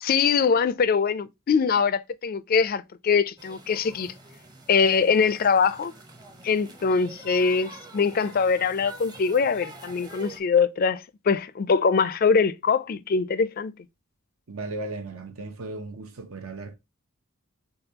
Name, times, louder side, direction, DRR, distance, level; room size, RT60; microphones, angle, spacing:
voice 1, 0.0-4.1 4.7-5.9 6.4-13.7, left 5 dB, 40° left, 0.3 m, -23 dB
sound 1, 3.4-10.4, right 2 dB, 20° right, 0.7 m, -46 dB
voice 2, 14.5-16.8, right 2 dB, 75° right, 0.8 m, -36 dB
6.7 x 2.3 x 2.8 m
head